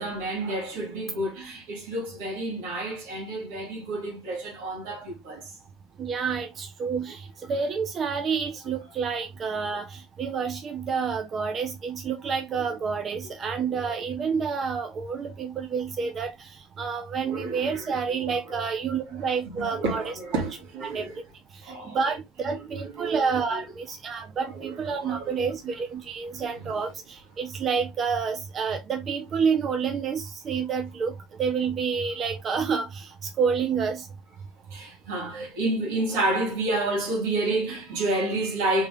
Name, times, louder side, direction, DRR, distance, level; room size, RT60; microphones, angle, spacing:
voice 1, 0.0-5.6 13.2-13.6 15.8-15.9 17.2-18.6 19.1-21.2 21.6-22.0 22.6-23.7 24.4-25.7 26.6-26.8 34.7-38.9, right 2 dB, 80° right, 2.2 m, -30 dB
voice 2, 6.0-20.4 20.8-21.2 21.6-34.1, right 6 dB, 35° right, 0.7 m, -29 dB
3.7 x 3.2 x 3.6 m
supercardioid pair, 115°, 0 cm